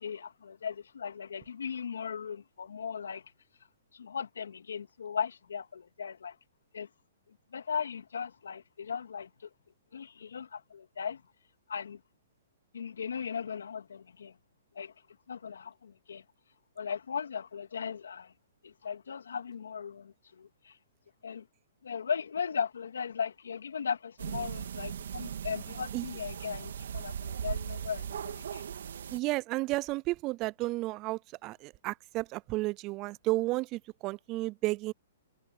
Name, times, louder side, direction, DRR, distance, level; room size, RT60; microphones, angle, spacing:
voice 1, 0.0-3.2 3.9-6.3 6.7-6.9 7.5-9.3 9.9-11.2 11.7-12.0 12.7-14.3 14.8-14.9 15.3-16.2 16.8-18.3 18.6-20.7 21.2-21.4 21.8-28.6, left 7 dB, 85° left, 3.1 m, -37 dB
sound 1, 24.2-29.2, right 8 dB, 75° right, 2.1 m, -38 dB
voice 2, 29.1-34.9, right 20 dB, 30° right, 0.4 m, -32 dB
hypercardioid pair, 140°, 0 cm